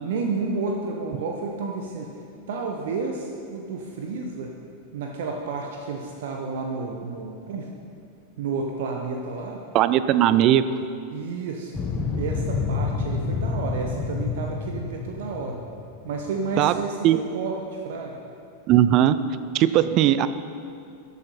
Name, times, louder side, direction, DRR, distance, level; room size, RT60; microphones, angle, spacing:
voice 1, 0.0-2.1 2.5-4.5 4.9-7.7 8.4-9.6 11.1-11.8 12.1-15.6 16.0-18.2, right 4 dB, 55° right, 2 dB, 0.9 m, -31 dB
voice 2, 9.7-10.6 16.6-16.8 17.0-17.2 18.7-19.2 19.5-20.3, right 12 dB, 40° right, 13 dB, 0.4 m, -18 dB
sound 1, 11.7-16.5, left 4 dB, 20° left, 1.4 m, -28 dB
13.0 x 8.4 x 4.4 m, 2.4 s
figure-of-eight pair, 90°, 0 cm